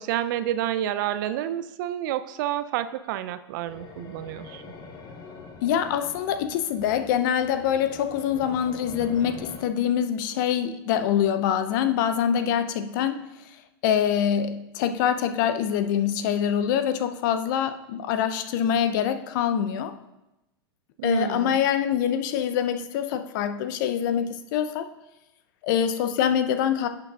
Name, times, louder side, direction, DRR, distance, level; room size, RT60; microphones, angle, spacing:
voice 1, 0.0-4.6 21.0-21.6, right 12 dB, 55° right, 13 dB, 0.4 m, -29 dB
sound 1, 3.7-9.6, left 4 dB, 35° left, 1.1 m, -44 dB
voice 2, 5.6-13.4 13.8-19.9 21.0-24.9 25.6-26.9, left 9 dB, 55° left, 10 dB, 0.6 m, -25 dB
11.0 x 6.7 x 2.4 m, 0.95 s
figure-of-eight pair, 95°, 13 cm